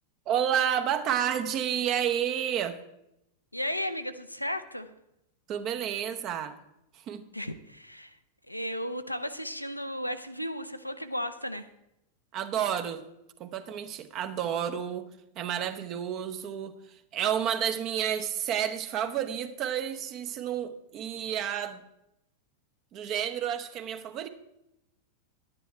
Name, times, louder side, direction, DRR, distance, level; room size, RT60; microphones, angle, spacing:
voice 1, 0.3-2.8 5.5-6.6 7.1-7.2 12.3-13.0 13.4-15.0 15.4-16.7 17.1-21.8 22.9-24.3, right 9 dB, 35° right, 9 dB, 0.9 m, -30 dB
voice 2, 3.5-4.9 7.3-8.2 8.5-11.7, equal, 90° left, 9 dB, 0.6 m, -34 dB
11.0 x 9.9 x 4.4 m, 0.85 s
figure-of-eight pair, 90°, 0 cm